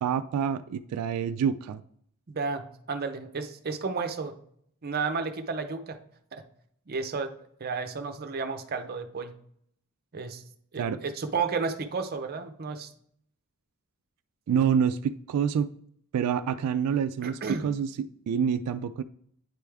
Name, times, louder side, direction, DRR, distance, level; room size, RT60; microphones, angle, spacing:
voice 1, 0.0-1.8 10.8-11.0 14.5-15.7 16.1-19.0, right 7 dB, 85° right, 12 dB, 0.3 m, -27 dB
voice 2, 2.3-4.4 4.8-6.0 6.3-6.4 6.9-9.3 10.1-10.4 10.7-12.9 17.2-17.6, right 4 dB, 45° right, 8 dB, 0.6 m, -32 dB
9.2 x 3.4 x 3.4 m, 0.67 s
head